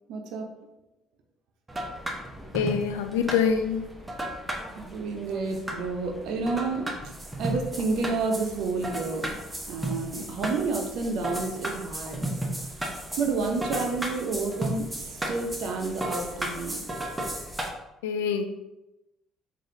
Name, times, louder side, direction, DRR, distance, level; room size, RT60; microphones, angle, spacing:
voice 1, 0.1-0.6 4.8-7.1 7.4-9.4 9.7-12.3 12.8-16.8, right 3 dB, 65° right, 3 dB, 0.6 m, -30 dB
sound 1, 1.7-17.7, right 1 dB, 15° right, 0.9 m, -34 dB
voice 2, 2.5-3.9 18.0-18.4, left 7 dB, 80° left, 7 dB, 0.3 m, -25 dB
3.8 x 3.3 x 2.7 m, 0.94 s
hypercardioid pair, 55°, 0 cm